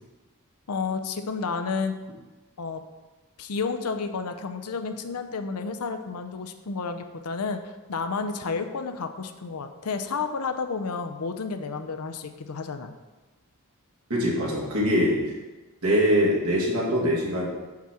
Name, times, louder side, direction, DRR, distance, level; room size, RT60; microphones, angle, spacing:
voice 1, 0.7-1.9 2.6-2.8 3.4-12.9, left 4 dB, 80° left, 8 dB, 0.6 m, -31 dB
voice 2, 14.1-15.3 15.8-17.5, equal, 70° right, -5 dB, 2.0 m, -23 dB
5.9 x 4.3 x 6.1 m, 1.2 s
head